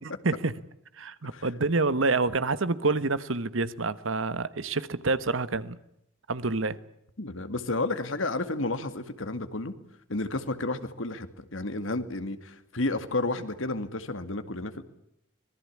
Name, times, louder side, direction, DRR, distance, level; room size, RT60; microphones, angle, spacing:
voice 1, 0.0-0.5 1.0-5.8 6.3-6.8, right 3 dB, 80° right, 1.3 m, -27 dB
voice 2, 7.2-9.7 10.1-14.8, left 2 dB, 75° left, 2.2 m, -31 dB
25.0 x 20.5 x 8.5 m
head